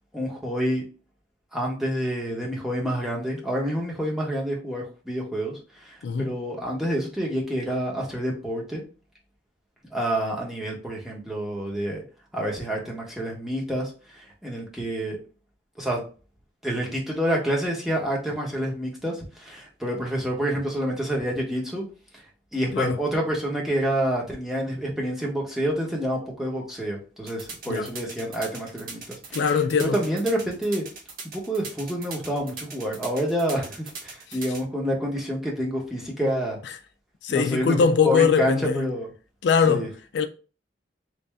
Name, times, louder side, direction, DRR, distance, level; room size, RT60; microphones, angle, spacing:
voice 1, 0.1-0.8 1.5-8.8 9.9-12.0 12.3-15.2 15.8-16.0 16.6-21.9 22.1-22.2 22.5-29.4 29.8-30.8 31.2-36.6 37.3-37.8 38.0-39.1 39.7-39.9, equal, ahead, 0.9 m, -28 dB
voice 2, 6.0-6.4 22.7-23.0 27.7-27.9 29.3-30.0 34.3-34.4 37.2-38.9 39.4-40.3, left 6 dB, 70° left, 0.4 m, -22 dB
sound 1, 27.3-34.6, right 4 dB, 50° right, 0.8 m, -39 dB
3.1 x 2.7 x 3.4 m
head